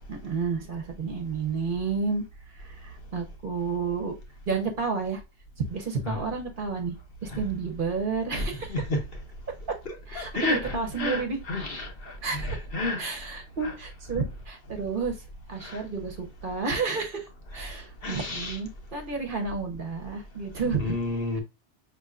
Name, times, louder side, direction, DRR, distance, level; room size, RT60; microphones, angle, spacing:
voice 1, 0.1-2.2 2.6-4.1 4.5-5.2 5.7-6.9 7.2-8.8 10.1-11.4 12.2-12.6 13.0-15.2 15.5-17.3 17.5-20.9 21.3-21.4, right 4 dB, 50° right, 1.0 m, -31 dB
voice 2, 8.4-9.0 10.1-13.1 13.6-13.7 15.6-15.8 18.0-18.6 20.6-21.4, left 2 dB, 60° left, 1.1 m, -31 dB
5.4 x 3.0 x 2.4 m
omnidirectional pair, 1.1 m